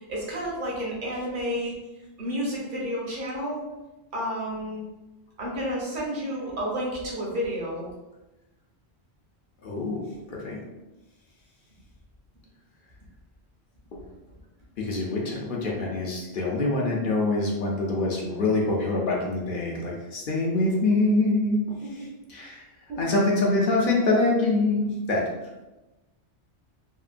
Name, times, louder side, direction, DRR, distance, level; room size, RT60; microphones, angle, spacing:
voice 1, 0.1-1.8 2.2-3.6 4.1-4.9 5.4-7.9 22.9-23.1, equal, 50° right, -3 dB, 0.9 m, -30 dB
voice 2, 9.6-10.0 10.3-10.6 13.9-14.0 14.8-22.6 23.0-25.2, left 2 dB, 60° left, -2 dB, 0.7 m, -25 dB
2.9 x 2.5 x 2.4 m, 1.1 s
omnidirectional pair, 1.1 m